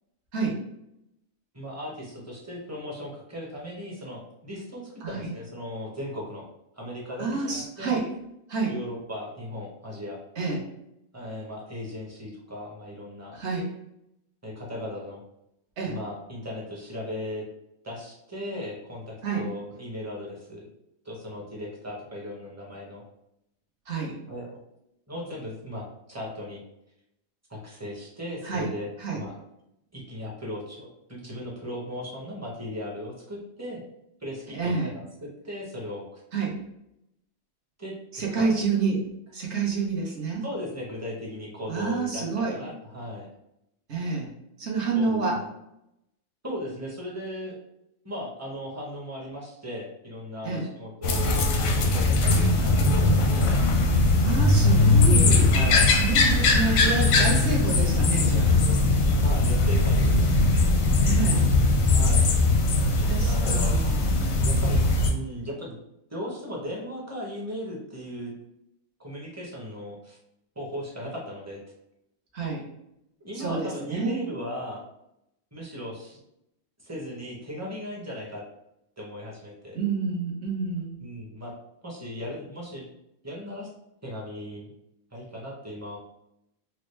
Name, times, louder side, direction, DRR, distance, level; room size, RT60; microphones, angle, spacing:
voice 1, 1.5-6.5 6.8-8.0 8.7-10.2 11.1-13.4 14.4-15.2 15.8-17.4 17.8-20.7 21.0-23.0 24.3-24.6 25.1-26.6 27.5-29.3 29.9-33.8 34.2-36.2 37.8-38.7 40.4-43.3 44.9-45.5 46.4-47.6 48.0-53.6 55.5-55.9 59.1-60.5 61.9-62.3 63.3-64.1 64.4-65.8 66.1-68.3 69.0-70.2 70.6-71.6 73.2-74.8 75.5-76.2 76.8-78.4 79.0-79.8 81.0-81.5 81.8-82.9 83.2-83.7 84.0-84.7 85.1-86.0, equal, 15° right, -3 dB, 0.7 m, -37 dB
voice 2, 5.0-5.3 7.2-8.1 8.5-8.7 10.4-10.7 13.3-13.7 15.8-16.0 19.2-19.5 23.9-24.2 28.4-28.7 29.0-29.2 34.5-34.9 36.3-36.6 38.1-40.5 41.7-42.6 43.9-44.3 44.6-45.4 50.4-50.7 54.2-55.6 56.0-58.6 61.0-61.5 62.8-64.3 72.3-72.6 73.3-74.2 79.7-81.0, right 4 dB, 55° right, -2 dB, 1.2 m, -29 dB
sound 1, 51.0-65.1, left 2 dB, 90° left, 1.1 m, -20 dB
4.4 x 2.1 x 3.2 m, 0.82 s
omnidirectional pair, 1.4 m